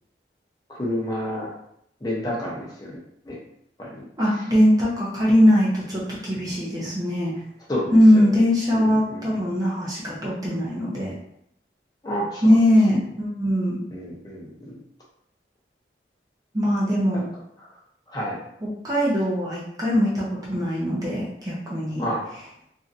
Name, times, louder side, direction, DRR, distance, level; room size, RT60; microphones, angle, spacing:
voice 1, 0.7-1.5 2.0-3.0 3.3-3.4 3.8-4.1 4.3-4.4 7.7-8.4 8.7-9.3 12.0-12.6 13.9-14.8 17.1-17.2 17.6-17.8 18.1-18.4 22.0-22.2, equal, 20° left, -3 dB, 0.7 m, -30 dB
voice 2, 4.2-7.3 7.9-11.1 12.4-13.8 16.5-17.2 18.8-22.0, equal, 20° right, -5 dB, 0.6 m, -20 dB
3.1 x 2.6 x 2.6 m, 0.73 s
head